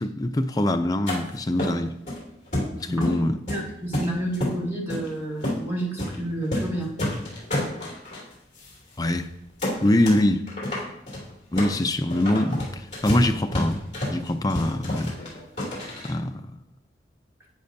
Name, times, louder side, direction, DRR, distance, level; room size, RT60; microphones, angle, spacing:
voice 1, 0.0-1.9 2.8-3.4 9.0-9.3 9.8-10.4 11.5-13.8 14.1-15.2 16.0-16.4, left 1 dB, 20° left, 0.4 m, -23 dB
sound 1, 1.1-1.2 1.6-2.2 2.5-3.2 3.5-4.6 4.9-5.1 5.4-5.6 6.0-6.2 6.4-6.7 7.0-8.2 8.6-8.7 9.0-9.2 9.6-10.2 10.5-16.1, left 1 dB, 40° left, 2.8 m, -29 dB
voice 2, 3.5-6.9, right 1 dB, 15° right, 2.0 m, -30 dB
10.5 x 8.8 x 2.7 m
head